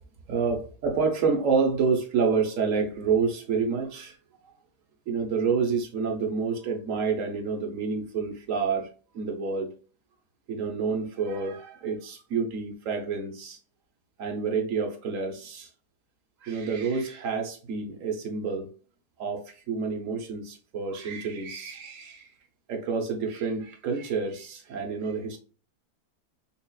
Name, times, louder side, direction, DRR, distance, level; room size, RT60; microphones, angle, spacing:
voice 1, 0.3-4.2 5.1-8.9 9.1-9.7 10.5-13.6 14.2-15.7 16.4-18.7 19.2-22.3 22.7-25.4, right 5 dB, 55° right, 1.1 m, -28 dB
5.5 x 2.4 x 2.3 m
omnidirectional pair, 1.8 m